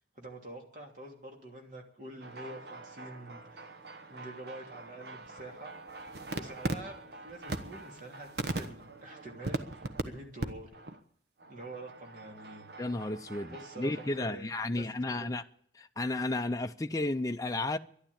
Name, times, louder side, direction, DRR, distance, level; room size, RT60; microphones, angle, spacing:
voice 1, 0.1-3.7 4.1-5.7 6.3-10.8 11.5-12.7 13.5-15.3, right 1 dB, 45° right, 3.0 m, -47 dB
sound 1, 2.2-10.0 10.4-10.5 10.7-11.0 11.4-14.3, right 2 dB, 65° right, 1.1 m, -41 dB
voice 2, 12.8-15.4 15.7-17.8, left 2 dB, 20° left, 0.5 m, -33 dB
12.0 x 11.5 x 8.6 m
head